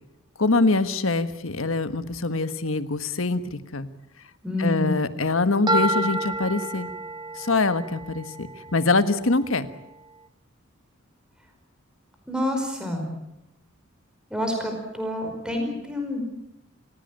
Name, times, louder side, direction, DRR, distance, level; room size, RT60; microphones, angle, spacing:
voice 1, 0.4-3.9 4.6-6.9 7.4-9.7, left 3 dB, 80° left, 11 dB, 1.4 m, -24 dB
voice 2, 4.4-5.0 12.3-13.1 14.3-16.2, left 1 dB, 5° right, 3 dB, 5.0 m, -28 dB
sound 1, 5.7-9.7, right 2 dB, 20° right, 1.1 m, -30 dB
28.5 x 16.5 x 9.0 m, 0.88 s
head